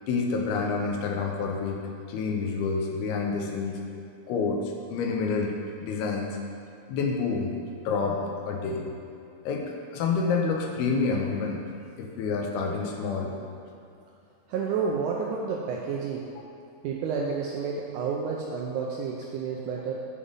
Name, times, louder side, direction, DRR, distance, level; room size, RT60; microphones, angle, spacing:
voice 1, 0.0-1.8 2.1-4.6 4.9-5.6 5.8-6.4 6.9-7.5 7.9-8.2 8.5-8.9 9.5-11.6 12.0-13.3, left 4 dB, 85° left, 1 dB, 2.7 m, -28 dB
voice 2, 14.5-16.2 16.8-19.9, right 5 dB, 85° right, -2 dB, 1.8 m, -30 dB
7.0 x 5.0 x 5.4 m, 2.6 s
omnidirectional pair, 4.3 m